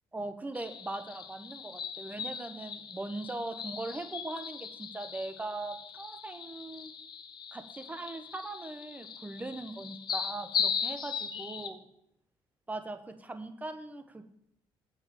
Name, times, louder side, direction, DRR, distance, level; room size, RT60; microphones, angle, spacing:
voice 1, 0.1-6.9 7.5-11.8 12.7-14.2, right 2 dB, 15° right, 8 dB, 0.9 m, -40 dB
sound 1, 0.5-11.7, left 7 dB, 50° left, 0.8 m, -38 dB
8.4 x 5.3 x 7.2 m, 0.77 s
cardioid pair, 105°, 10 cm